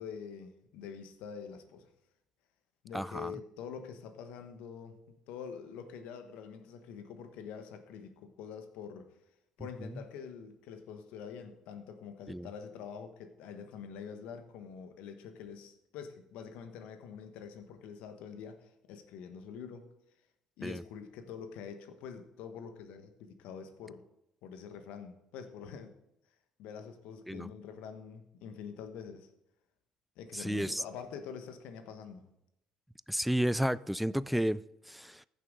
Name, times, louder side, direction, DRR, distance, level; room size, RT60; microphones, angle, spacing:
voice 1, 0.0-1.9 2.8-9.1 9.6-19.9 20.6-24.0 24.4-25.9 26.6-29.3 30.2-32.3, left 7 dB, 75° left, 1.2 m, -45 dB
voice 2, 2.9-3.3 9.8-10.0 12.3-12.5 20.6-20.8 27.3-27.5 30.3-30.8 33.1-35.3, equal, ahead, 0.4 m, -32 dB
15.0 x 6.8 x 3.7 m
hypercardioid pair, 65°, 2 cm